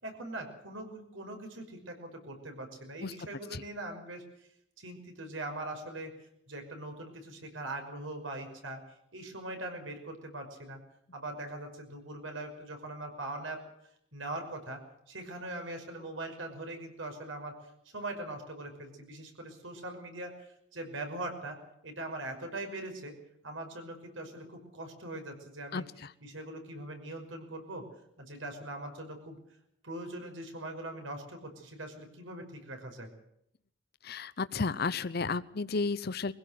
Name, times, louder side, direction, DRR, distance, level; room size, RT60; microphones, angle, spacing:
voice 1, 0.0-4.5 4.8-6.1 6.5-8.8 9.1-10.8 11.1-13.6 14.1-17.6 17.9-21.6 21.8-23.1 23.4-25.9 26.2-27.9 28.2-29.4 29.8-33.1, right 2 dB, 75° right, 4 dB, 5.8 m, -41 dB
voice 2, 25.7-26.1 34.0-36.3, left 4 dB, 55° left, 15 dB, 0.7 m, -33 dB
22.5 x 16.5 x 7.7 m, 0.73 s
head